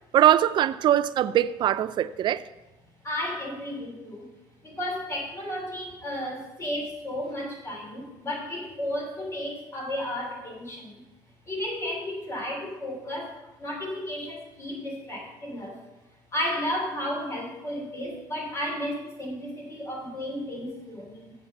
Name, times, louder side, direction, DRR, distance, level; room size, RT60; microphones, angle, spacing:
voice 1, 0.1-2.4, right 11 dB, 50° right, 0.4 m, -21 dB
voice 2, 3.0-4.3 4.6-11.0 11.5-15.8 16.3-21.3, left 1 dB, 30° left, 3.2 m, -33 dB
7.3 x 7.2 x 6.4 m
cardioid pair, 115°, 10 cm